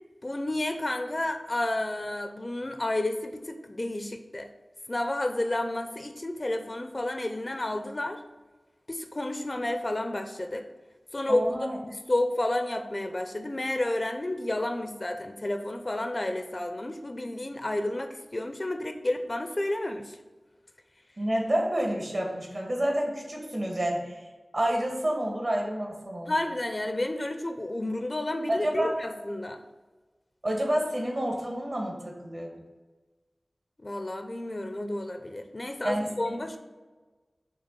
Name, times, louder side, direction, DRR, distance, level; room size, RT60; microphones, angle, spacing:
voice 1, 0.2-4.5 4.9-8.2 8.9-10.6 11.1-20.2 26.3-29.6 33.8-36.6, left 1 dB, 35° left, 7 dB, 0.5 m, -31 dB
voice 2, 11.3-11.8 21.2-24.2 24.5-26.3 28.5-28.9 30.4-32.5 35.8-36.4, right 1 dB, 55° right, -1 dB, 1.8 m, -29 dB
6.7 x 3.1 x 5.9 m, 1.3 s
wide cardioid pair, 70°, 0 cm